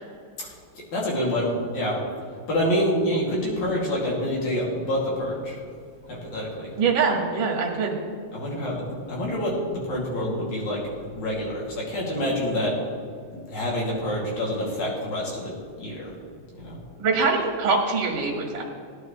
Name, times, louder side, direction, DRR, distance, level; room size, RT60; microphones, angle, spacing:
voice 1, 0.9-2.0 2.5-5.6 6.1-6.7 8.3-10.8 11.1-12.8 13.5-16.2 16.6-16.8, equal, 55° left, -4 dB, 3.9 m, -27 dB
voice 2, 6.8-7.9 17.0-18.6, right 4 dB, 40° right, -1 dB, 2.0 m, -23 dB
17.0 x 11.0 x 3.3 m, 2.3 s
omnidirectional pair, 4.1 m